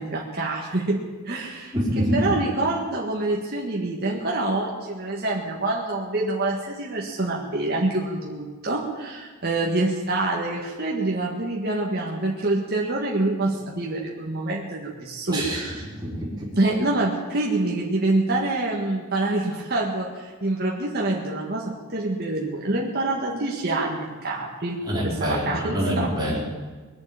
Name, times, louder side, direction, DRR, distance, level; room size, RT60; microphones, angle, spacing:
voice 1, 0.0-15.8 16.6-26.1, right 2 dB, 45° right, -2 dB, 1.8 m, -26 dB
voice 2, 1.7-2.3 15.3-15.6 16.0-16.5 24.9-26.4, equal, 15° right, -12 dB, 4.1 m, -25 dB
21.0 x 7.8 x 8.8 m, 1.4 s
head